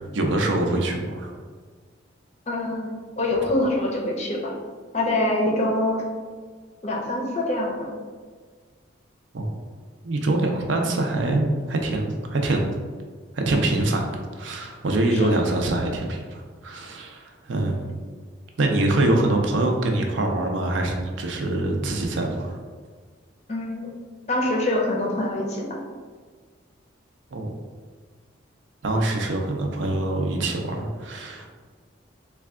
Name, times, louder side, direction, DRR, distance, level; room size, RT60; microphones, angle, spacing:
voice 1, 0.1-1.3 9.3-9.5 10.0-12.7 13.3-14.1 14.4-17.9 18.6-22.6 27.3-27.5 28.8-31.5, right 2 dB, 70° right, 2 dB, 0.5 m, -24 dB
voice 2, 2.5-4.5 4.9-6.0 6.8-7.9 15.1-15.3 23.5-23.9 24.3-25.8, left 1 dB, 35° left, -1 dB, 0.5 m, -25 dB
3.3 x 2.2 x 3.6 m, 1.6 s
head